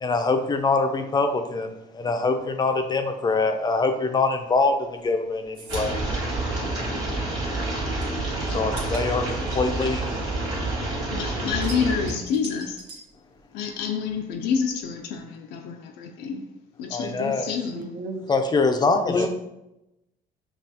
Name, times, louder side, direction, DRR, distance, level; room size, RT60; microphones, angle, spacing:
voice 1, 0.0-6.0 8.5-9.3 9.5-10.1 16.9-17.5 18.3-19.3, left 3 dB, 25° left, 0.5 m, -24 dB
sound 1, 4.5-7.3 7.6-10.9 11.2-13.8 14.1-15.2, right 3 dB, 85° right, 1.2 m, -44 dB
sound 2, 5.7-12.1, right 2 dB, 25° right, 1.5 m, -28 dB
voice 2, 11.1-12.8 13.5-16.4 16.8-17.9, left 6 dB, 85° left, 0.4 m, -28 dB
voice 3, 17.7-18.2 19.1-19.3, right 3 dB, 50° right, 0.7 m, -35 dB
5.4 x 2.4 x 2.7 m
cardioid pair, 110°, 17 cm